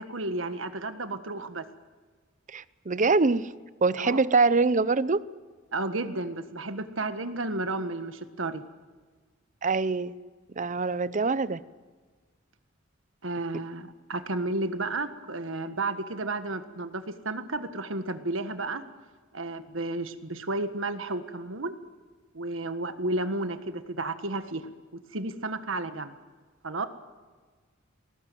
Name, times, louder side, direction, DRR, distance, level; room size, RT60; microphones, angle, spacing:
voice 1, 0.0-1.6 4.0-4.2 5.7-8.6 13.2-18.8 19.3-21.8 22.3-24.7 25.1-26.1 26.6-26.9, right 2 dB, 70° right, 9 dB, 1.6 m, -32 dB
voice 2, 2.5-3.5 3.8-5.3 9.6-10.1 10.6-11.6, right 4 dB, 40° right, 16 dB, 0.7 m, -24 dB
21.0 x 18.5 x 9.4 m, 1.4 s
head